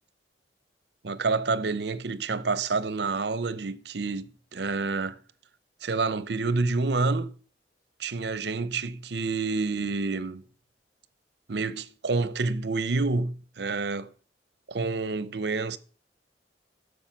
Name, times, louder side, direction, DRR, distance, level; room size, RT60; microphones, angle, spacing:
voice 1, 1.0-5.2 5.8-7.3 8.0-10.4 11.5-14.1 14.7-15.8, right 3 dB, 65° right, 0.7 m, -28 dB
11.5 x 6.5 x 5.9 m
head